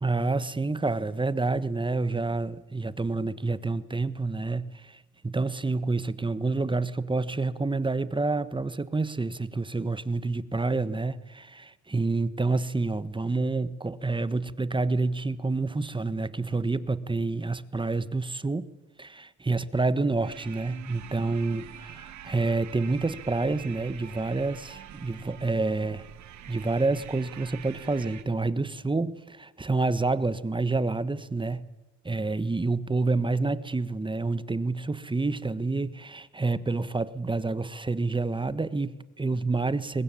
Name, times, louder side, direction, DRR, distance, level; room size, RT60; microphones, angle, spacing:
voice 1, 0.0-18.7 19.0-26.1 26.5-31.6 32.0-40.0, right 3 dB, 15° right, 15 dB, 1.3 m, -28 dB
sound 1, 20.2-28.2, right 10 dB, 70° right, 1.9 m, -45 dB
22.5 x 20.0 x 8.6 m, 1.1 s
cardioid pair, 90°, 30 cm